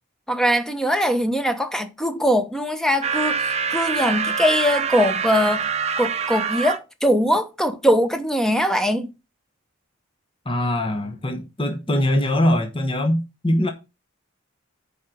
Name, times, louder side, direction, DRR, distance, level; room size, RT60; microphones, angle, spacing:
voice 1, 0.3-5.6 6.0-9.1, equal, 5° left, 0.9 m, -21 dB
sound 1, 3.0-6.8, right 6 dB, 35° right, 0.7 m, -25 dB
voice 2, 10.4-13.7, left 1 dB, 25° left, 1.0 m, -22 dB
7.3 x 5.1 x 5.9 m
head